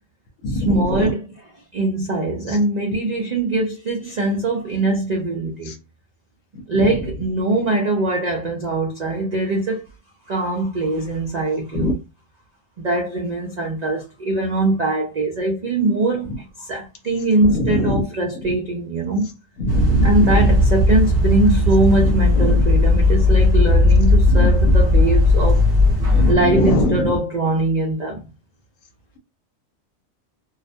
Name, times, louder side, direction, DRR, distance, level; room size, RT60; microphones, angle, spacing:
voice 1, 0.5-5.7 6.7-9.8 10.3-12.0 12.8-19.3 20.0-25.6 26.3-28.2, right 2 dB, 80° right, 0.3 m, -22 dB
voice 2, 17.6-18.0 19.6-20.1 24.4-24.5 26.1-26.3 26.6-26.9, left 1 dB, 80° left, 1.0 m, -20 dB
sound 1, 19.7-26.3, left 2 dB, 40° right, 0.7 m, -16 dB
2.4 x 2.1 x 2.5 m
omnidirectional pair, 1.4 m